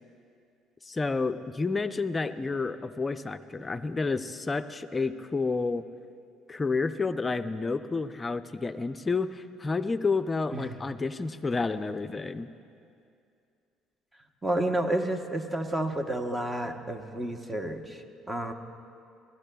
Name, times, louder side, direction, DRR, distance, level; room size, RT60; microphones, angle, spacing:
voice 1, 0.9-5.8 6.5-12.5, left 4 dB, 25° left, 10 dB, 0.5 m, -30 dB
voice 2, 14.4-18.5, right 1 dB, 20° right, 6 dB, 0.9 m, -30 dB
19.5 x 13.0 x 2.3 m, 2.4 s
supercardioid pair, 90°, 0 cm